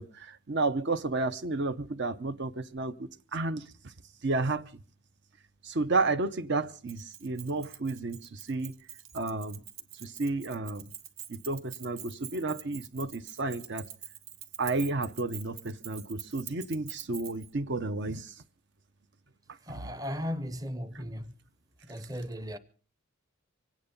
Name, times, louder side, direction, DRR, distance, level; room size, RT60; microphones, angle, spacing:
voice 1, 0.0-3.9 4.2-4.8 5.6-8.7 9.1-9.6 10.0-10.9 11.3-13.9 14.6-18.3 19.7-19.8, right 3 dB, 55° right, 0.7 m, -32 dB
Keys jangling, 6.9-17.5, right 10 dB, 70° right, 1.3 m, -45 dB
voice 2, 19.6-21.3 21.9-22.6, equal, 15° right, 0.8 m, -36 dB
24.5 x 9.3 x 5.2 m
head